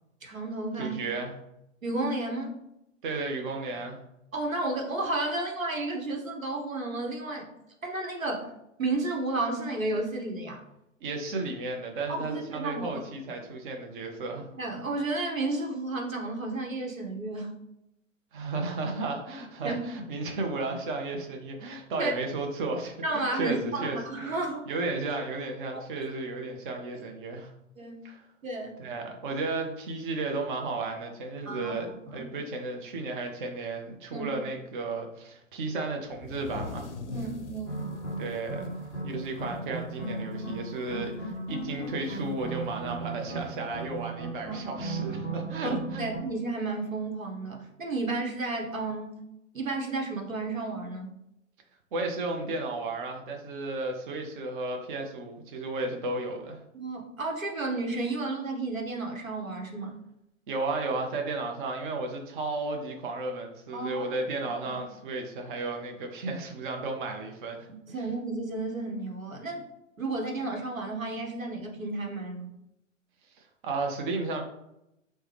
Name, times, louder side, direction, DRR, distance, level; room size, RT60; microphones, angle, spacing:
voice 1, 0.2-1.0 1.8-2.5 4.3-7.5 7.8-8.5 8.8-10.6 12.1-13.0 14.6-17.5 19.6-19.8 22.0-22.1 23.0-24.7 27.8-28.0 28.4-28.8 31.5-32.3 34.1-34.3 37.1-37.8 44.4-44.7 45.6-49.2 49.5-51.1 56.7-60.0 63.7-64.1 64.7-64.8 67.9-69.6 70.0-72.5, right 2 dB, 80° right, 1 dB, 1.0 m, -32 dB
voice 2, 0.8-1.3 3.0-4.0 11.0-14.5 18.3-24.0 24.7-27.5 28.0-28.2 28.8-36.9 38.2-46.1 51.9-56.6 60.5-67.7 73.4-74.4, right 3 dB, 40° right, 2 dB, 0.6 m, -33 dB
sound 1, 36.1-39.8 40.2-40.3 40.7-41.1 42.3-42.4 43.4-43.5, left 3 dB, 60° left, 0.5 m, -42 dB
sound 2, 37.7-46.2, right 2 dB, 5° left, 0.3 m, -36 dB
4.4 x 2.1 x 3.2 m, 0.84 s
figure-of-eight pair, 105°, 39 cm